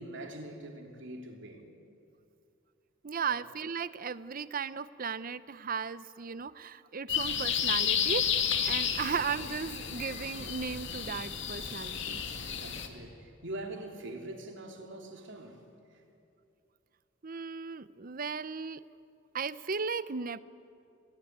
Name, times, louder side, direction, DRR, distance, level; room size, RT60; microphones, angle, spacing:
voice 1, 0.0-1.7 3.3-3.4 8.9-9.0 12.5-16.0, right 1 dB, 60° right, 3.3 m, -44 dB
voice 2, 3.0-8.3 8.6-12.2 17.2-18.8 19.3-20.4, right 5 dB, 45° right, 0.7 m, -36 dB
sound 1, 7.1-12.9, left 8 dB, 60° left, 2.2 m, -32 dB
27.5 x 19.5 x 9.6 m
head